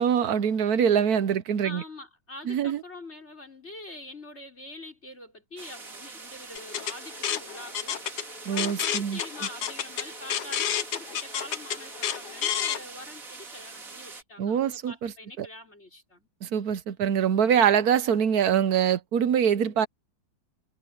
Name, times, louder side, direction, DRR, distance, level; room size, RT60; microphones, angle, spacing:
voice 1, 0.0-1.8 2.5-2.8 8.5-9.2 14.4-15.1 15.4-15.5 16.4-19.9, right 8 dB, 60° right, 1.1 m, -24 dB
voice 2, 1.6-8.0 8.5-16.3, left 2 dB, 30° left, 5.4 m, -44 dB
sound 1, 5.6-14.2, right 4 dB, 40° right, 2.8 m, -44 dB
sound 2, 6.6-12.8, left 9 dB, 60° left, 1.5 m, -30 dB
omnidirectional pair, 2.2 m